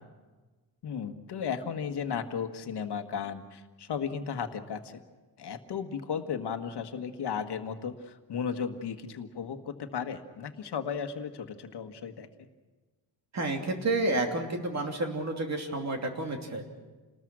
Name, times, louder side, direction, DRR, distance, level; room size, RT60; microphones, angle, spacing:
voice 1, 0.8-5.0 5.4-12.5, left 7 dB, 65° left, 6 dB, 1.5 m, -35 dB
voice 2, 13.3-16.6, right 2 dB, 40° right, 3 dB, 2.9 m, -30 dB
28.5 x 20.0 x 6.2 m, 1.3 s
wide cardioid pair, 165°, 43 cm